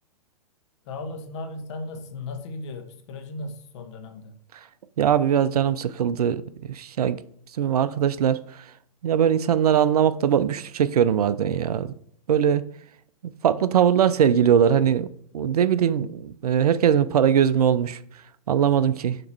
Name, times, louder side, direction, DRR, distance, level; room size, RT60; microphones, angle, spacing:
voice 1, 0.8-4.4, left 2 dB, 45° left, 1.0 m, -36 dB
voice 2, 5.0-6.4 6.7-7.2 7.6-8.4 9.0-11.9 12.3-12.6 13.4-15.1 15.3-18.0 18.5-19.2, right 9 dB, 70° right, 0.4 m, -21 dB
7.0 x 2.9 x 4.6 m
hypercardioid pair, 115°, 20 cm